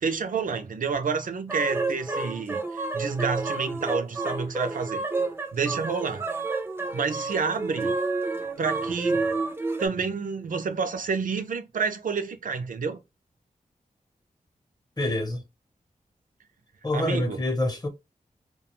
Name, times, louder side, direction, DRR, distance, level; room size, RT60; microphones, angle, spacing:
voice 1, 0.0-5.0 5.5-6.3 6.9-8.0 8.6-9.3 9.8-13.0 16.9-17.4, right 5 dB, 70° right, 0.5 m, -29 dB
sound 1, 1.5-9.9, right 3 dB, 15° right, 0.4 m, -30 dB
voice 2, 15.0-15.4 16.8-17.9, left 1 dB, 30° left, 0.7 m, -26 dB
2.3 x 2.2 x 2.9 m
wide cardioid pair, 110°, 14 cm